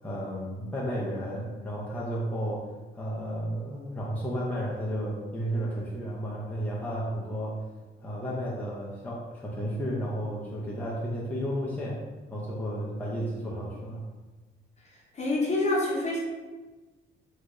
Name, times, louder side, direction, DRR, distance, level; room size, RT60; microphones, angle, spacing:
voice 1, 0.0-2.7 2.9-7.6 8.0-12.0 12.3-14.0, equal, 10° left, -6 dB, 0.6 m, -33 dB
voice 2, 15.1-16.2, left 2 dB, 35° left, -3 dB, 0.9 m, -26 dB
3.2 x 2.5 x 3.1 m, 1.2 s
cardioid pair, 90°, 20 cm